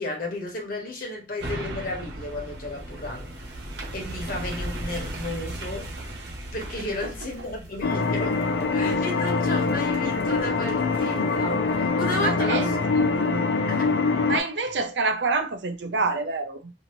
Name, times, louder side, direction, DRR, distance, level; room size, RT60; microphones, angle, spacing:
voice 1, 0.0-3.7 3.9-5.9 6.5-8.4 8.7-12.7 13.7-13.9 14.6-14.7, left 2 dB, 55° left, 1.1 m, -33 dB
sound 1, 1.4-12.8 13.3-13.4, right 1 dB, 65° right, 1.0 m, -38 dB
sound 2, 7.8-14.4, left 4 dB, 70° left, 0.4 m, -24 dB
voice 2, 12.2-12.7 13.0-13.2 14.3-16.7, right 3 dB, 80° right, 0.6 m, -27 dB
2.7 x 2.7 x 2.9 m
head